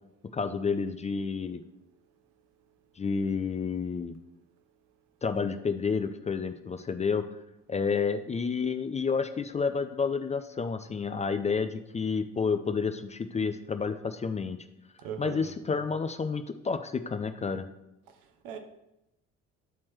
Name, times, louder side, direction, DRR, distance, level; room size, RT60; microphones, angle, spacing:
voice 1, 0.3-1.6 3.0-4.2 5.2-7.2 7.7-14.6 15.2-17.7, left 5 dB, 20° left, 9 dB, 0.4 m, -30 dB
voice 2, 15.0-15.5 18.4-18.6, right 7 dB, 70° right, 6 dB, 0.8 m, -38 dB
9.3 x 4.3 x 3.1 m, 0.90 s
hypercardioid pair, 50°, 34 cm